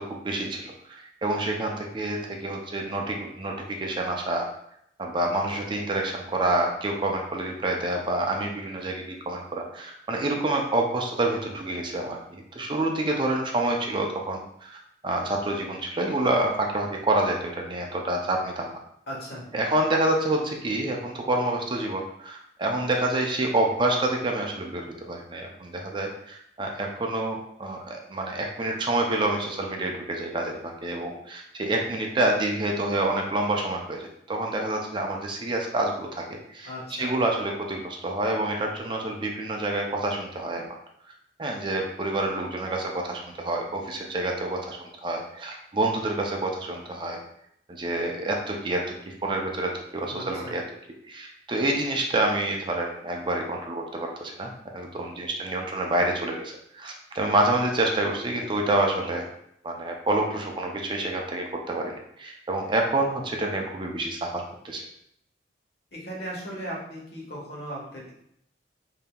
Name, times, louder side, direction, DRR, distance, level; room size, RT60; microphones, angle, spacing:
voice 1, 0.0-4.5 5.0-18.7 19.5-36.7 37.0-40.6 41.4-47.2 47.7-50.6 51.0-59.2 59.6-64.8, right 2 dB, 30° right, 1 dB, 0.5 m, -28 dB
voice 2, 19.1-19.4 36.6-37.2 50.1-50.5 65.9-68.1, equal, 65° left, -4 dB, 1.3 m, -37 dB
5.2 x 2.8 x 2.3 m, 0.72 s
head